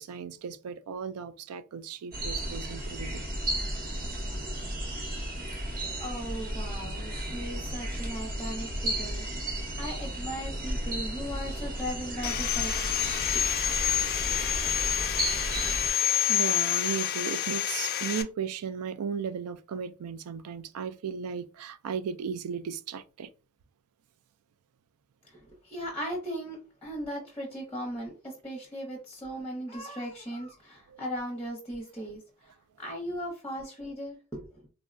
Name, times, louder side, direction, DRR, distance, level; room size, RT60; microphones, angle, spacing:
voice 1, 0.0-3.2 15.7-23.3 30.9-31.0, right 7 dB, 85° right, 0.3 m, -36 dB
sound 1, 2.1-15.9, right 1 dB, 40° right, 0.8 m, -34 dB
voice 2, 5.7-13.0 13.3-13.6 25.2-34.6, equal, 10° left, 0.6 m, -38 dB
Sawing, 12.2-18.2, left 10 dB, 45° left, 0.3 m, -28 dB
3.5 x 2.1 x 2.4 m
head